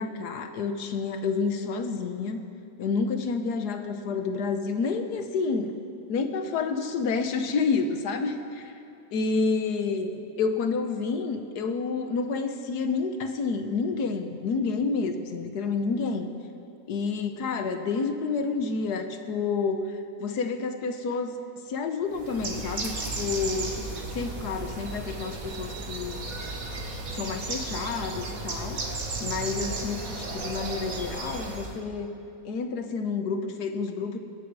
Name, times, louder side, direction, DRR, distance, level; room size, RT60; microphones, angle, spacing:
voice 1, 0.0-2.4 2.8-5.7 6.1-8.7 9.1-16.3 16.9-21.4 21.7-23.9 24.1-26.2 27.1-28.8 29.2-32.1 32.4-34.2, left 4 dB, 90° left, 7 dB, 1.5 m, -29 dB
Bird, 22.1-31.8, right 2 dB, 60° right, 1.8 m, -34 dB
23.5 x 10.0 x 4.7 m, 2.6 s
omnidirectional pair, 1.7 m